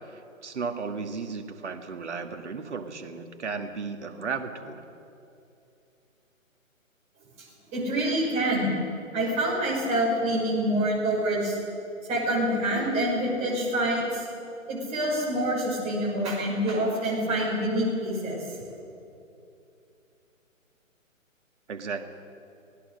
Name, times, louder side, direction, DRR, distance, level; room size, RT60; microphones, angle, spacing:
voice 1, 0.4-4.8 21.7-22.1, right 5 dB, 55° right, 5 dB, 2.2 m, -34 dB
voice 2, 7.7-8.8 9.1-11.6 12.1-14.2 14.7-18.4, right 1 dB, 15° right, -5 dB, 6.3 m, -26 dB
24.5 x 19.0 x 6.7 m, 2.7 s
figure-of-eight pair, 145°, 41 cm